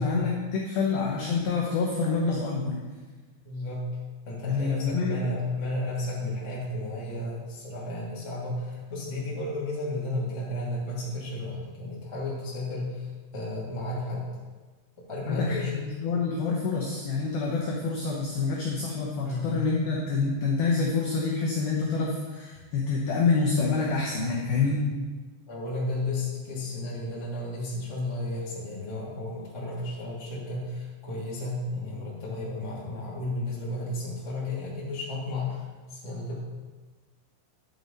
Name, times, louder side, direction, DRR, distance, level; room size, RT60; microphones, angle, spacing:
voice 1, 0.0-2.8 4.4-5.2 15.3-24.8, left 4 dB, 85° left, -2 dB, 2.1 m, -27 dB
voice 2, 3.4-3.9 4.2-14.3 15.1-15.7 19.2-19.5 24.9-25.0 25.5-36.4, left 2 dB, 20° left, -7 dB, 0.7 m, -33 dB
11.0 x 7.9 x 4.1 m, 1.3 s
omnidirectional pair, 5.9 m